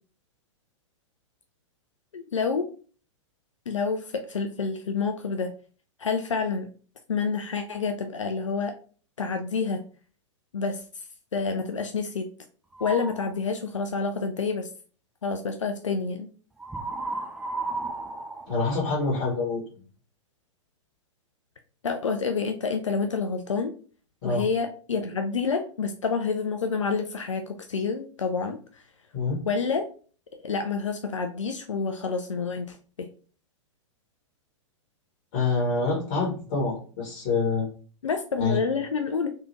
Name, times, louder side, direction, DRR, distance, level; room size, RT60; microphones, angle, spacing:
voice 1, 2.1-2.7 3.7-5.5 6.0-6.7 7.1-8.7 9.2-9.8 10.5-10.8 11.3-12.3 12.8-14.7 15.2-16.3 21.8-23.7 24.2-28.8 29.4-29.9 30.4-33.1 38.0-39.3, left 5 dB, 70° left, 5 dB, 0.5 m, -28 dB
sound 1, 12.7-13.3 16.6-19.4, right 3 dB, 5° right, 0.4 m, -34 dB
voice 2, 18.5-19.6 24.2-24.4 29.1-29.4 35.3-37.7 38.4-38.6, left 3 dB, 40° left, -3 dB, 1.7 m, -26 dB
3.3 x 3.3 x 2.9 m, 0.40 s
figure-of-eight pair, 100°, 16 cm